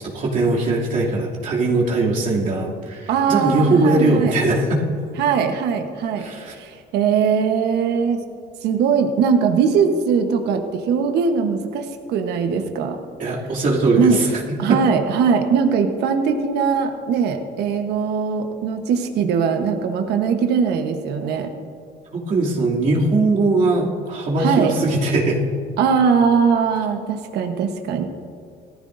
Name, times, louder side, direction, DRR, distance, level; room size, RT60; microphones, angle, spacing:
voice 1, 0.0-4.8 6.2-6.5 13.2-14.3 14.7-14.8 22.1-25.4, right 2 dB, 50° right, -5 dB, 2.7 m, -20 dB
voice 2, 3.1-4.4 5.2-6.3 6.5-8.2 8.6-13.0 14.0-14.2 14.6-21.5 24.4-24.8 25.8-28.1, right 6 dB, 80° right, 5 dB, 1.1 m, -20 dB
18.0 x 14.0 x 2.6 m, 2.3 s
cardioid pair, 110°, 17 cm